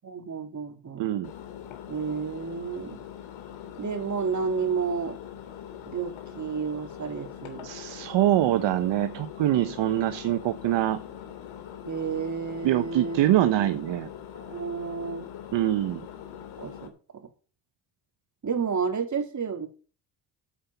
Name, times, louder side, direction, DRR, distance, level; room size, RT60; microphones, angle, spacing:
voice 1, 0.0-1.1 1.9-3.1 3.8-5.2 5.9-7.7 11.8-13.7 14.3-15.3 16.6-17.3 18.4-19.7, right 5 dB, 35° right, 3.4 m, -31 dB
voice 2, 1.0-1.3 7.6-11.0 12.6-14.1 15.5-16.1, right 13 dB, 60° right, 1.0 m, -24 dB
Engine, 1.2-16.9, left 9 dB, 75° left, 3.2 m, -42 dB
9.6 x 8.4 x 8.1 m
supercardioid pair, 70°, 48 cm